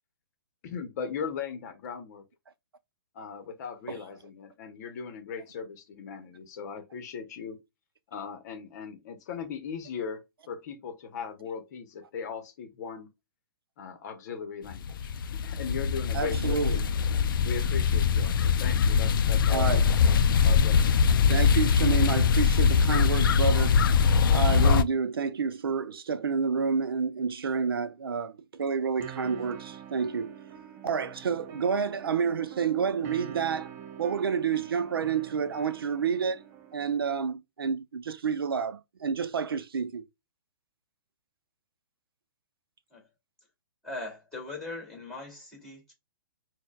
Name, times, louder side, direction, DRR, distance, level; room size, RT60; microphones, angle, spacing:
voice 1, 0.6-2.2 3.1-7.6 8.1-13.1 13.8-16.7 17.4-21.0, left 6 dB, 50° left, 0.8 m, -38 dB
sound 1, 14.7-24.8, left 6 dB, 65° left, 0.4 m, -22 dB
voice 2, 16.1-16.8 19.5-19.8 21.3-23.8 24.3-30.3 30.8-33.7 34.0-36.4 36.7-40.0, right 6 dB, 80° right, 0.5 m, -29 dB
sound 2, 29.0-37.0, right 9 dB, 20° right, 0.5 m, -46 dB
voice 3, 43.8-45.9, left 2 dB, 5° left, 2.1 m, -40 dB
6.1 x 2.2 x 2.2 m
hypercardioid pair, 135°, 12 cm